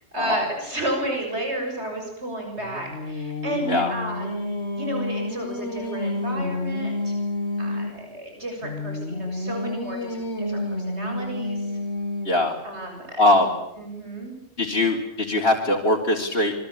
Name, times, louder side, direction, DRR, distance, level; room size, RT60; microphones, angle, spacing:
voice 1, 0.1-7.1 7.6-11.7 12.6-13.2 13.8-14.3, right 1 dB, 80° right, 2 dB, 7.3 m, -32 dB
Singing, 2.6-8.0 8.6-12.5, left 2 dB, 85° left, 2.5 m, -29 dB
voice 2, 12.2-12.5 13.2-13.5 14.6-16.5, left 2 dB, 60° left, -2 dB, 3.7 m, -21 dB
28.0 x 23.5 x 8.7 m, 0.80 s
omnidirectional pair, 1.1 m